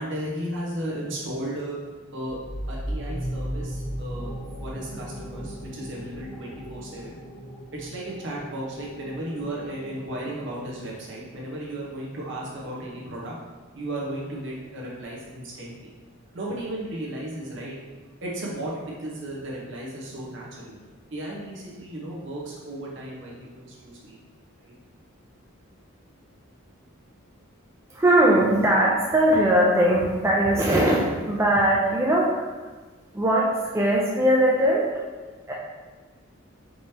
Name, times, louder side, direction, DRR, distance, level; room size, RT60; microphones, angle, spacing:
voice 1, 0.0-1.8 2.1-2.4 2.7-4.3 4.6-7.2 7.7-13.3 13.7-15.7 16.3-17.7 18.2-20.7 21.1-24.2 24.6-24.7, right 1 dB, 60° right, -5 dB, 1.1 m, -34 dB
sound 1, 2.2-11.6, equal, 90° left, 1.1 m, -37 dB
voice 2, 27.9-32.6 33.1-34.9 35.5-35.6, right 1 dB, 15° right, -4 dB, 0.4 m, -20 dB
5.2 x 3.3 x 2.9 m, 1.4 s
head